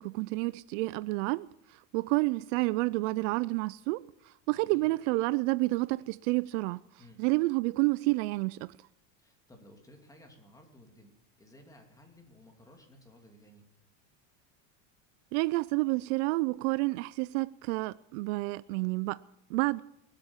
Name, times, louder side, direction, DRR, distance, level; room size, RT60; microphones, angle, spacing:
voice 1, 0.0-6.8 7.2-8.8 15.3-19.2 19.5-19.8, right 23 dB, 70° right, 0.5 m, -29 dB
voice 2, 4.5-4.9 7.0-7.2 9.2-13.7, left 1 dB, 10° left, 2.7 m, -56 dB
20.0 x 8.5 x 7.1 m
supercardioid pair, 130°, 39 cm